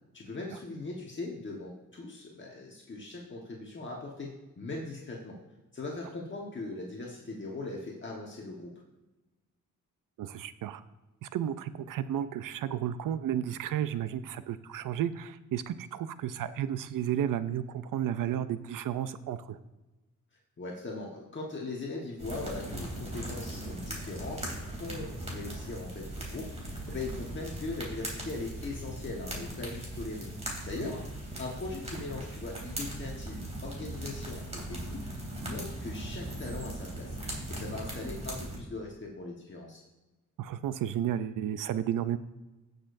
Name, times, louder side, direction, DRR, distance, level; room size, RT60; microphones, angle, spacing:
voice 1, 0.1-5.4 5.7-8.7 20.6-30.3 30.7-31.1 31.4-35.1 35.4-37.2 37.5-39.8, left 3 dB, 35° left, -2 dB, 1.4 m, -40 dB
voice 2, 10.2-10.8 11.2-19.6 30.8-30.9 40.4-42.2, right 10 dB, 85° right, 13 dB, 0.6 m, -32 dB
sound 1, 22.2-38.6, right 1 dB, 20° right, 3.1 m, -39 dB
17.0 x 6.7 x 2.6 m, 1.1 s
cardioid pair, 110°, 31 cm